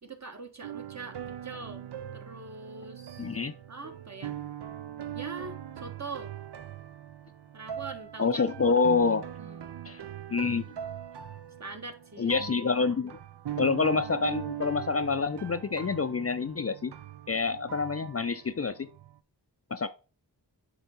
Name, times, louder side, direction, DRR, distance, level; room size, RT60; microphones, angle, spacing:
voice 1, 0.0-1.8 2.1-3.3 3.7-4.4 5.1-6.3 7.5-8.7 9.4-9.8 11.6-12.3 12.8-13.1, right 4 dB, 40° right, 1.3 m, -43 dB
sound 1, 0.6-19.2, right 10 dB, 70° right, 0.6 m, -41 dB
voice 2, 3.2-3.5 8.2-9.3 9.9-10.0 10.3-10.6 12.2-13.2 13.6-16.9 17.3-18.9 19.7-19.9, left 4 dB, 35° left, 0.5 m, -27 dB
7.9 x 3.5 x 4.2 m
wide cardioid pair, 60°, 42 cm